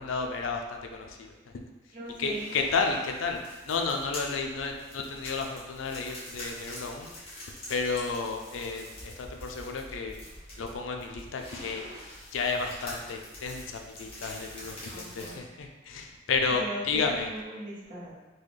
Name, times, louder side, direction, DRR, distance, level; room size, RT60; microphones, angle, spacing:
voice 1, 0.0-1.3 2.2-7.1 7.7-10.2 10.6-11.8 12.3-17.3, left 4 dB, 80° left, 3 dB, 0.4 m, -32 dB
voice 2, 1.9-2.7 14.9-15.4 16.6-18.1, equal, 40° right, -7 dB, 0.8 m, -39 dB
sound 1, 2.0-15.3, left 1 dB, 30° left, 1.1 m, -45 dB
3.9 x 2.3 x 3.2 m, 1.1 s
head